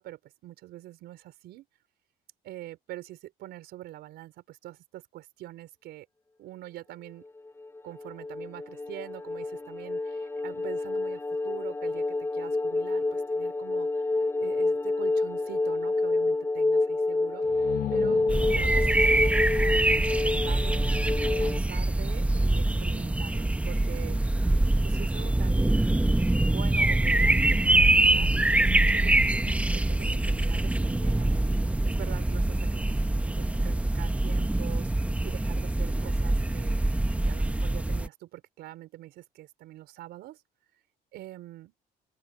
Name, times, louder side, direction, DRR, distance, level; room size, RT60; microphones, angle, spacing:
voice 1, 0.0-1.6 2.4-6.1 6.4-7.2 7.8-18.3 18.5-20.9 21.3-24.2 24.8-25.7 26.3-36.8 37.3-40.4 41.1-41.7, right 15 dB, 80° right, 4.7 m, -45 dB
sound 1, 7.5-21.6, left 2 dB, 15° left, 4.1 m, -28 dB
sound 2, 17.4-21.1, left 12 dB, 60° left, 1.1 m, -39 dB
sound 3, 18.3-38.1, right 1 dB, 10° right, 1.0 m, -24 dB
open air
cardioid pair, 110°, 17 cm